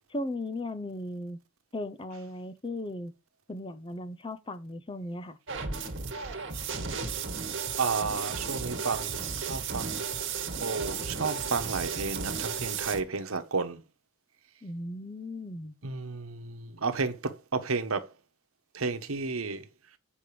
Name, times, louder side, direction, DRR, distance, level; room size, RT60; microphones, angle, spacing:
voice 1, 0.1-1.4 1.7-3.1 3.5-5.4 14.6-15.7, left 1 dB, 25° left, 0.6 m, -37 dB
sound 1, 5.5-13.0, right 5 dB, 60° right, 1.7 m, -34 dB
voice 2, 7.8-10.0 10.6-13.8 15.8-18.1 18.7-19.7, right 4 dB, 90° right, 1.0 m, -32 dB
8.5 x 5.4 x 5.0 m
head